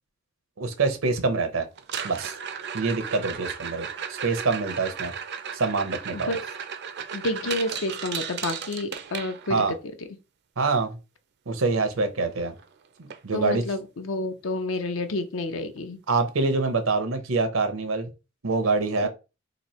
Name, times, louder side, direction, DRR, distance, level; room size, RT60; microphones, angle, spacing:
voice 1, 0.6-1.7 2.0-2.4 2.7-5.1 5.5-6.3 9.5-9.7 10.6-11.0 11.5-12.5 13.2-13.6 16.1-18.1 18.4-19.1, right 3 dB, 90° right, 0.8 m, -25 dB
sound 1, 1.8-9.8 12.0-12.1 12.4-12.7 13.1-13.2 13.8-13.9 15.8-15.9, right 7 dB, 55° right, 0.4 m, -35 dB
voice 2, 6.1-6.4 7.1-9.6 13.3-16.0 19.0-19.1, left 2 dB, 75° left, 0.6 m, -29 dB
3.0 x 2.6 x 4.2 m
head